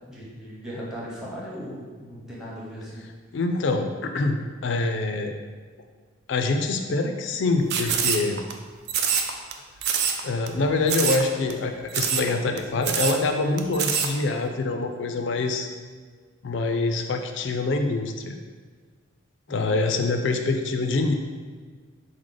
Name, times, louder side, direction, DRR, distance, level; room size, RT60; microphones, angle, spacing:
voice 1, 0.1-3.0 19.5-19.8, equal, ahead, -6 dB, 0.8 m, -38 dB
voice 2, 3.3-5.4 6.3-8.4 10.2-15.7 16.4-18.4 19.5-21.1, left 3 dB, 60° left, 5 dB, 0.3 m, -25 dB
sound 1, 7.7-8.5 8.9-9.5 9.8-10.2 10.5-10.6 10.9-11.2 11.5-11.6 11.9-12.3 12.6-12.7 12.8-13.2 13.6-14.1, right 7 dB, 50° right, 0.3 m, -24 dB
4.7 x 2.1 x 3.8 m, 1.5 s
head